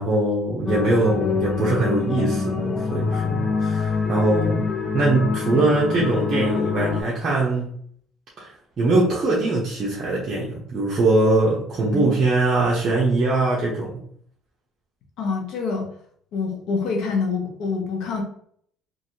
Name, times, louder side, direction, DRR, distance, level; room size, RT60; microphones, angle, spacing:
voice 1, 0.0-4.7 4.9-7.7 8.4-8.5 8.8-14.0, right 2 dB, 40° right, -5 dB, 0.8 m, -22 dB
sound 1, 0.6-7.0, left 5 dB, 35° left, 0.4 m, -25 dB
voice 2, 15.2-15.9 16.3-18.2, left 4 dB, 70° left, 2 dB, 0.8 m, -26 dB
3.1 x 2.5 x 2.7 m, 0.63 s
cardioid pair, 110°, 0 cm